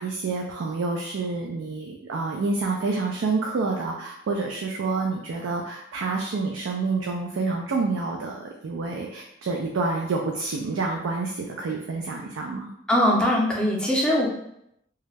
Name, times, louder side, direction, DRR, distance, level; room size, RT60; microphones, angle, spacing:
voice 1, 0.0-12.7, right 3 dB, 80° right, 0 dB, 0.4 m, -28 dB
voice 2, 12.9-14.3, equal, 5° left, -3 dB, 0.5 m, -21 dB
2.3 x 2.0 x 3.2 m, 0.76 s
head